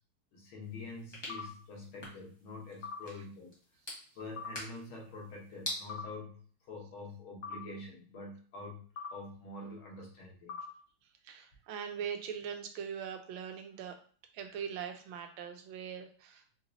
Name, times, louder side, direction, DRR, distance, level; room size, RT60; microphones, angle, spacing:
voice 1, 0.3-3.5 4.2-8.8 9.1-10.5, left 2 dB, 90° left, -1 dB, 1.9 m, -46 dB
sound 1, 0.6-5.8, left 1 dB, 20° left, 0.8 m, -46 dB
sound 2, 1.3-1.5 2.8-3.0 4.4-4.6 5.9-6.1 7.4-7.6 9.0-9.1 10.5-10.7, left 5 dB, 60° left, 0.9 m, -41 dB
voice 2, 11.2-14.0 14.3-16.6, right 7 dB, 85° right, 6 dB, 1.4 m, -41 dB
4.5 x 2.9 x 2.6 m, 0.43 s
omnidirectional pair, 2.2 m